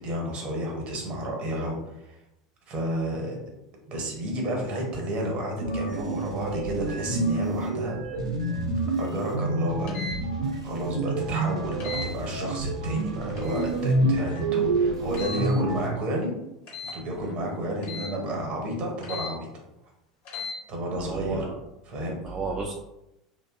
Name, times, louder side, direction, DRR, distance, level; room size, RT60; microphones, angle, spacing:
voice 1, 0.0-2.2 2.7-3.4 3.9-8.0 9.0-9.9 10.6-16.4 16.9-19.5 20.7-21.5 21.8-22.3, equal, 45° right, 0 dB, 0.8 m, -31 dB
sound 1, 5.6-15.9, right 2 dB, 85° right, 0.5 m, -28 dB
sound 2, 9.9-10.2 11.8-12.1 13.4-13.7 15.1-15.5 16.7-17.0 17.8-18.1 19.0-19.3 20.2-20.6, left 4 dB, 55° left, 1.0 m, -36 dB
voice 2, 21.0-21.5 22.2-22.7, right 4 dB, 20° right, -2 dB, 0.3 m, -32 dB
2.6 x 2.1 x 2.4 m, 0.88 s
hypercardioid pair, 80°, 3 cm